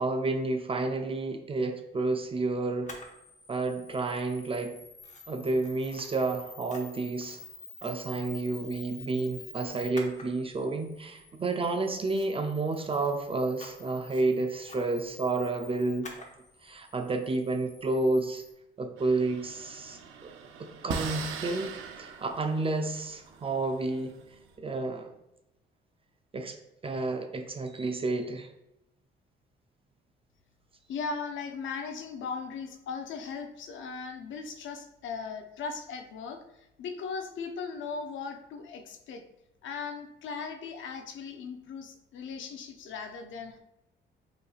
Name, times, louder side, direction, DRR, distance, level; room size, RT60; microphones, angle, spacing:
voice 1, 0.0-2.9 3.5-4.8 5.3-7.4 7.8-16.2 16.6-18.4 18.8-20.3 20.6-21.7 22.0-24.2 24.6-25.1 26.3-26.6 26.8-28.5, right 3 dB, 30° right, 5 dB, 0.4 m, -30 dB
Camera, 2.9-18.5, left 4 dB, 35° left, 0.8 m, -49 dB
sound 1, 19.0-24.5, right 6 dB, 85° right, 0.5 m, -41 dB
voice 2, 30.9-39.2 39.6-43.6, left 5 dB, 75° left, 6 dB, 0.6 m, -38 dB
4.9 x 3.0 x 2.4 m, 0.88 s
cardioid pair, 90°, 20 cm